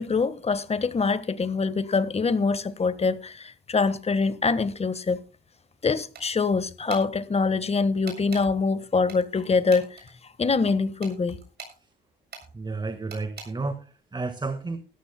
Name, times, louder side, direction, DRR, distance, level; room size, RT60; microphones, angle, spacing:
voice 1, 0.0-5.2 5.8-10.0 10.4-11.4, left 4 dB, 30° left, 1.4 m, -24 dB
sound 1, 6.1-6.5 6.9-7.1 8.1-8.5 9.1-10.1 11.0-11.8 12.3-12.5 13.1-13.5, right 5 dB, 55° right, 6.8 m, -42 dB
voice 2, 12.5-14.8, right 3 dB, 20° right, 1.6 m, -32 dB
19.5 x 14.0 x 2.2 m
cardioid pair, 90°, 20 cm